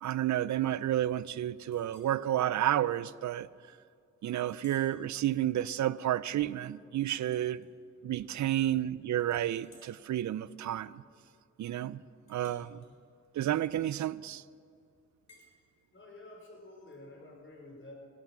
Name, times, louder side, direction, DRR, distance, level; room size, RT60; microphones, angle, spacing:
voice 1, 0.0-3.5 4.2-7.6 8.0-11.0 11.6-12.0 12.3-12.8 13.3-14.4, right 12 dB, 70° right, 0.5 m, -31 dB
Chink clink, 1.7-2.2 2.7-2.9 3.3-3.4 4.3-5.0 5.5-5.8 7.2-8.2 8.5-8.9 9.2-14.4 15.3-15.5, left 2 dB, 60° left, 4.4 m, -63 dB
voice 2, 8.0-8.5 12.6-12.9 15.4-15.5 15.9-17.9, left 2 dB, 40° left, 4.7 m, -52 dB
17.0 x 12.0 x 6.0 m
cardioid pair, 80°, 30 cm